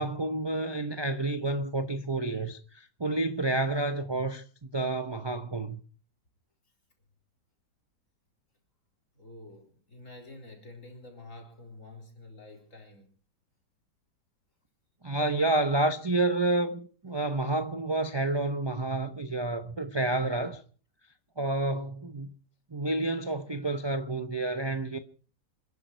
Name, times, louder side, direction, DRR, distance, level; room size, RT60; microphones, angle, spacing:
voice 1, 0.0-5.8 15.0-20.6 21.4-22.3 22.7-25.0, right 2 dB, 25° right, 0.5 m, -29 dB
voice 2, 9.1-13.1 23.6-23.7, left 2 dB, 45° left, 4.4 m, -48 dB
27.0 x 11.0 x 4.5 m
omnidirectional pair, 1.9 m